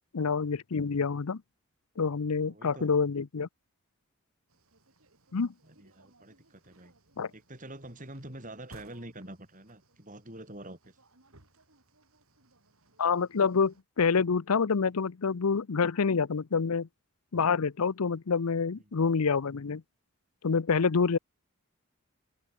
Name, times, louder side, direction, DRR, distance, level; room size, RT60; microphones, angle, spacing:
voice 1, 0.1-1.4 2.0-3.5 5.3-5.5 7.2-7.3 13.0-16.9 17.3-19.8 20.4-21.2, left 5 dB, 80° left, 0.6 m, -27 dB
voice 2, 2.4-2.9 5.6-6.9 7.3-11.0, right 1 dB, 35° right, 6.3 m, -46 dB
sound 1, 4.5-13.8, right 2 dB, 70° right, 4.1 m, -61 dB
open air
head